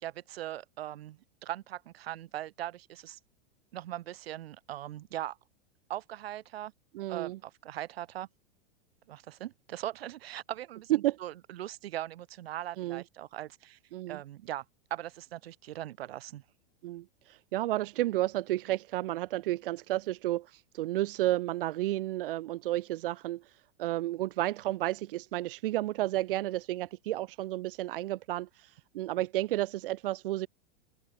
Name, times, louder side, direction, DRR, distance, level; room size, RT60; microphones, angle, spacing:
voice 1, 0.0-3.2 3.7-5.4 5.9-6.7 7.1-8.3 9.1-13.8 14.1-14.6 14.9-16.4, right 13 dB, 80° right, 1.7 m, -40 dB
voice 2, 6.9-7.4 10.9-11.2 12.8-13.0 13.9-14.2 16.8-30.5, right 16 dB, 60° right, 0.8 m, -32 dB
open air
supercardioid pair, 170°, 30 cm